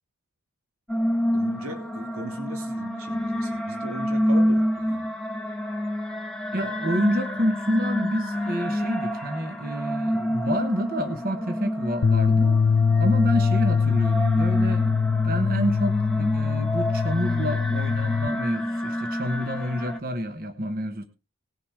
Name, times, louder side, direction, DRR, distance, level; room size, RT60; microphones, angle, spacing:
sound 1, 0.9-20.0, equal, 5° left, 1.9 m, -28 dB
voice 1, 1.3-5.1 6.6-6.8, right 1 dB, 75° right, 4 dB, 3.0 m, -39 dB
voice 2, 6.5-12.6 13.0-21.0, equal, 40° right, 7 dB, 1.2 m, -28 dB
sound 2, 12.0-18.3, left 5 dB, 75° left, 0.6 m, -22 dB
19.5 x 7.0 x 4.7 m, 0.32 s
head